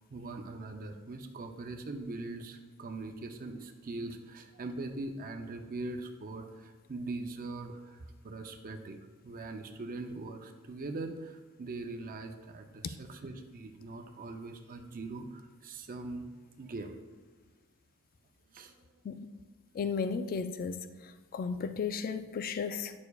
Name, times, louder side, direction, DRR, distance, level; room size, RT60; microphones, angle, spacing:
voice 1, 0.1-16.3 16.6-17.0 18.5-18.7, right 2 dB, 40° right, 5 dB, 0.5 m, -41 dB
voice 2, 19.7-22.9, left 5 dB, 40° left, 10 dB, 0.3 m, -35 dB
9.4 x 6.7 x 2.3 m, 1.3 s
head